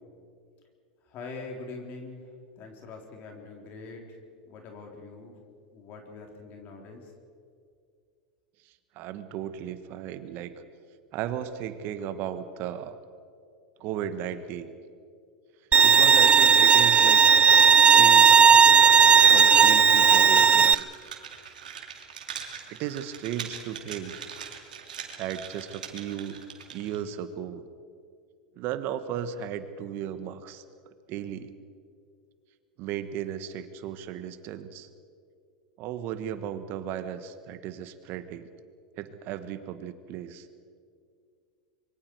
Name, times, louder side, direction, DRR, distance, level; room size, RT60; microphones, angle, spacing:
voice 1, 1.1-4.2 4.4-5.4 5.7-7.1, left 3 dB, 50° left, 2 dB, 3.9 m, -43 dB
voice 2, 8.9-10.5 11.1-13.0 13.8-14.7 15.8-17.2 17.9-18.5 19.3-20.9 22.7-24.1 25.2-26.4 26.7-27.6 28.6-30.6 31.1-31.5 32.8-34.9 35.8-38.5 39.0-40.5, right 10 dB, 55° right, 11 dB, 1.6 m, -35 dB
Bowed string instrument, 15.7-20.7, right 7 dB, 25° right, 0.5 m, -16 dB
sound 1, 19.5-27.0, right 7 dB, 85° right, 2.8 m, -41 dB
25.5 x 23.0 x 4.8 m, 2.2 s
hypercardioid pair, 100°, 4 cm